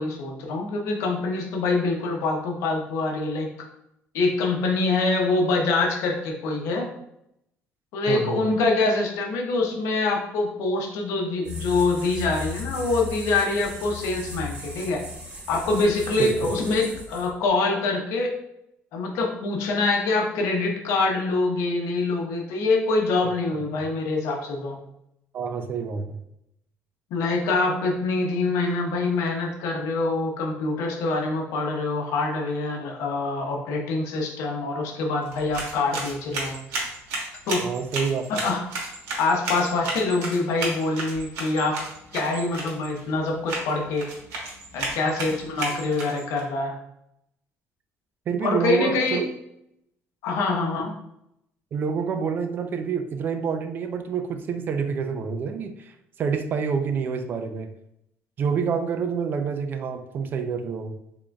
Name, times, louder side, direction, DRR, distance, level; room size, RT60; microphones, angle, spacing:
voice 1, 0.0-3.5 4.1-6.9 7.9-15.0 15.5-18.3 18.9-24.8 27.1-36.6 37.5-37.6 38.3-38.6 39.2-41.8 42.1-44.0 44.7-46.7 48.4-49.2 50.2-50.9, left 3 dB, 80° left, 1 dB, 0.8 m, -25 dB
voice 2, 8.1-8.4 16.2-16.3 25.3-26.2 37.6-38.2 45.1-45.2 48.3-49.3 51.7-55.9 56.2-57.7 58.4-60.9, right 6 dB, 40° right, 7 dB, 0.4 m, -27 dB
sound 1, 11.4-17.5, left 3 dB, 25° right, 1.2 m, -36 dB
sound 2, 35.2-46.4, right 2 dB, 85° right, 1.3 m, -34 dB
3.8 x 3.6 x 2.3 m, 0.79 s
cardioid pair, 140°, 5 cm